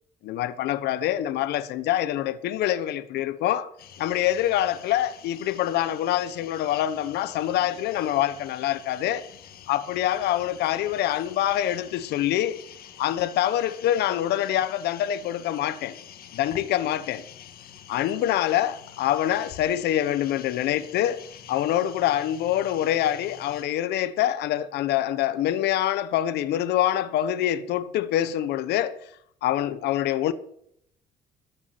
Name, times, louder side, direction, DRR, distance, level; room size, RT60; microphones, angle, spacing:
voice 1, 0.2-3.7 4.0-9.2 9.7-12.6 13.0-16.0 16.3-17.2 17.9-21.2 21.5-28.9 29.4-30.3, left 12 dB, 80° left, 1.1 m, -25 dB
sound 1, 3.8-23.6, left 9 dB, 65° left, 1.7 m, -47 dB
13.0 x 7.3 x 8.1 m
cardioid pair, 110°, 17 cm